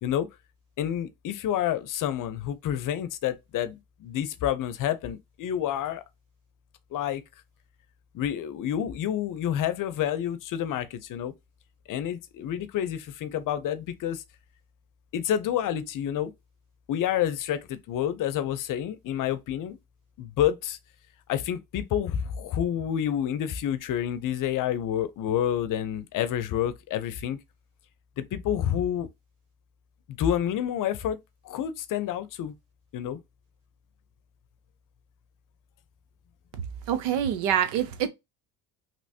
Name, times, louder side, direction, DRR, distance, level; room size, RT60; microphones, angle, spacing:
voice 1, 0.8-6.0 6.9-7.2 8.1-11.3 11.9-14.2 15.1-16.3 16.9-19.8 20.2-20.8 21.3-27.4 28.2-29.1 30.2-31.2 31.4-32.5 32.9-33.2, left 10 dB, 55° left, 0.6 m, -29 dB
voice 2, 36.9-38.1, right 10 dB, 90° right, 0.8 m, -25 dB
3.1 x 3.1 x 2.7 m
supercardioid pair, 95°, 39 cm